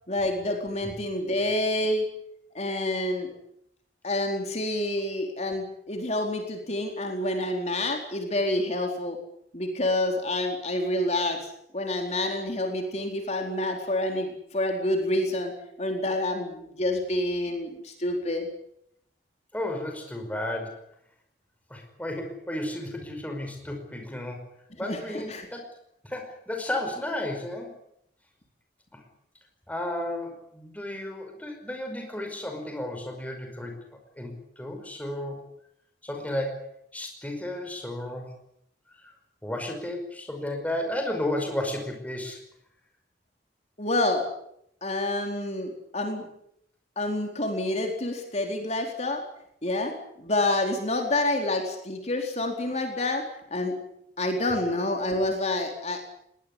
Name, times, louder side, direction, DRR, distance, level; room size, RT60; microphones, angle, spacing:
voice 1, 0.1-2.0 2.5-3.3 4.0-9.2 9.5-15.5 15.8-18.5 24.8-25.5 43.8-44.2 44.8-46.3 47.0-49.2 49.6-49.9 50.2-53.7 54.2-56.1, left 1 dB, 40° left, 3 dB, 4.4 m, -28 dB
voice 2, 19.5-20.8 21.7-24.4 24.8-25.6 26.0-27.7 28.9-29.0 29.7-33.7 34.2-35.4 36.0-38.3 39.4-42.4 49.7-49.8, left 1 dB, 10° left, 4 dB, 5.2 m, -33 dB
22.0 x 20.0 x 10.0 m, 0.73 s
head